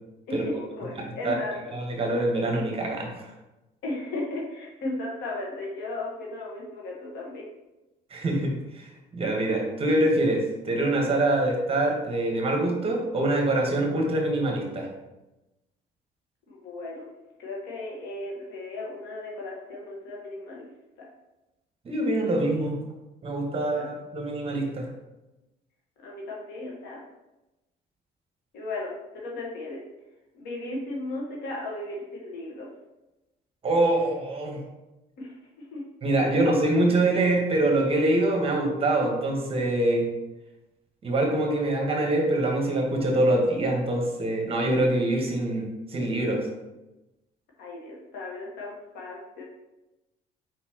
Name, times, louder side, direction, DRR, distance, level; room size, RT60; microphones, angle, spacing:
voice 1, 0.3-1.7 3.8-7.5 16.5-17.1 17.4-20.7 23.8-23.9 26.0-27.0 28.5-29.8 30.3-32.7 35.2-35.8 36.3-36.5 47.6-49.4, left 2 dB, 85° left, -3 dB, 1.2 m, -35 dB
voice 2, 1.7-3.3 8.1-14.9 21.8-22.8 23.2-24.8 33.6-34.6 36.0-40.1 41.0-46.5, right 1 dB, 35° right, 1 dB, 1.1 m, -24 dB
4.5 x 4.2 x 2.8 m, 1.0 s
cardioid pair, 110°, 17 cm